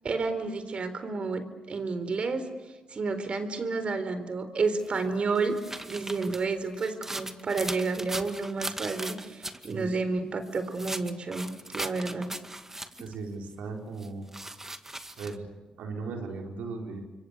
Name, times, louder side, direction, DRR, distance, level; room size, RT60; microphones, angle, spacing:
voice 1, 0.0-2.5 2.9-5.6 5.9-12.3, right 4 dB, 50° right, 10 dB, 4.0 m, -30 dB
sound 1, 4.8-9.7 10.5-13.1 14.0-15.4, right 1 dB, 15° right, 2.1 m, -38 dB
voice 2, 9.7-10.0 13.0-14.3 15.2-15.5 15.8-17.0, right 4 dB, 80° right, 2 dB, 4.6 m, -37 dB
27.0 x 23.5 x 8.4 m, 1.2 s
supercardioid pair, 50°, 2 cm